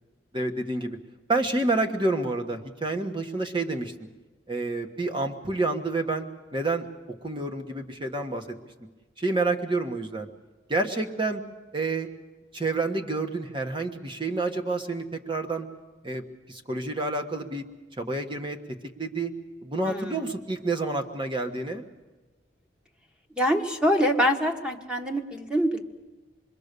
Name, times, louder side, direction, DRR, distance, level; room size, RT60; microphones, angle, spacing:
voice 1, 0.3-1.0 1.3-3.9 4.5-6.3 6.5-6.9 7.2-8.5 9.2-10.3 10.7-11.4 11.7-12.1 12.5-15.7 16.0-16.2 16.5-17.6 18.0-18.6 19.0-19.3 19.6-21.8, right 2 dB, 25° right, 4 dB, 1.4 m, -28 dB
voice 2, 19.9-20.3 23.4-25.8, equal, 5° right, 4 dB, 1.4 m, -25 dB
26.5 x 21.5 x 6.8 m, 1.2 s
head